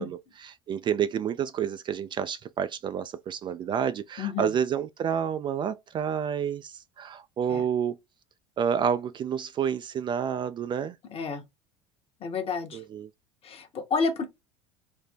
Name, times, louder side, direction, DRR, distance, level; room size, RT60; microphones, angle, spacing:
voice 1, 0.0-8.0 8.6-10.9 12.7-13.1, right 8 dB, 30° right, 0.3 m, -29 dB
voice 2, 4.2-4.5 7.5-7.6 11.1-11.4 12.2-12.8 13.4-14.2, left 5 dB, 40° left, 1.0 m, -30 dB
3.4 x 2.1 x 4.2 m
hypercardioid pair, 70°, 15 cm